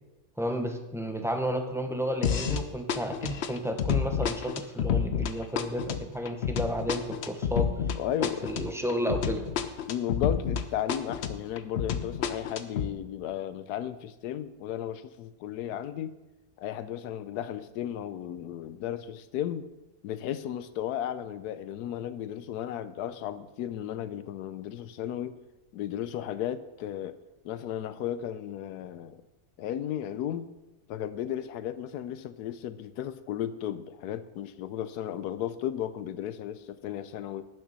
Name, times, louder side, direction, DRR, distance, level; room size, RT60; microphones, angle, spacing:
voice 1, 0.4-7.7 8.2-9.4, equal, 5° right, 0.6 m, -32 dB
sound 1, 2.2-2.6 2.9-10.6 10.9-12.9, left 8 dB, 55° left, 0.8 m, -29 dB
voice 2, 8.0-8.5 9.9-16.1 16.6-19.7 20.0-25.4 25.7-27.2 27.4-29.2 29.6-30.5 30.9-37.5, left 11 dB, 85° left, 1.2 m, -34 dB
12.0 x 9.1 x 4.1 m
omnidirectional pair, 1.6 m